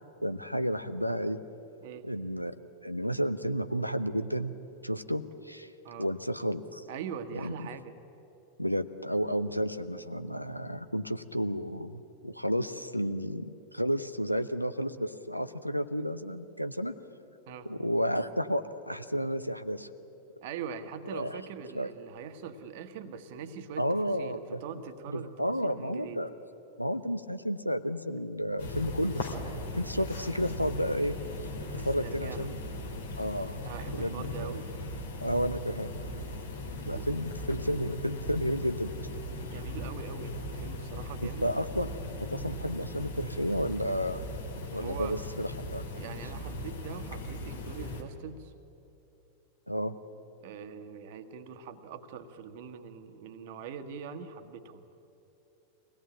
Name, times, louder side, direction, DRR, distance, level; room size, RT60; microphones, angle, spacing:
voice 1, 0.2-1.4 2.0-2.5 2.8-4.5 4.8-5.7 6.0-6.8 7.3-7.5 8.6-16.9 17.6-19.9 21.1-21.4 21.7-21.9 23.8-24.6 25.1-26.3 26.8-29.3 29.7-31.2 31.7-32.5 33.2-33.6 33.9-34.5 35.2-35.9 36.9-38.9 41.4-41.9 42.2-44.2 44.7-45.8 49.7-49.9, equal, 90° left, 10 dB, 0.8 m, -31 dB
voice 2, 6.9-7.9 17.5-17.7 20.4-23.9 24.2-25.3 25.6-26.2 31.8-32.5 33.6-34.7 36.8-37.1 39.4-41.5 44.7-45.2 46.0-48.5 50.4-54.8, right 7 dB, 50° right, 9 dB, 1.4 m, -42 dB
sound 1, 28.6-48.0, left 1 dB, 65° left, 2.5 m, -38 dB
24.0 x 18.0 x 8.9 m, 3.0 s
figure-of-eight pair, 90°, 0 cm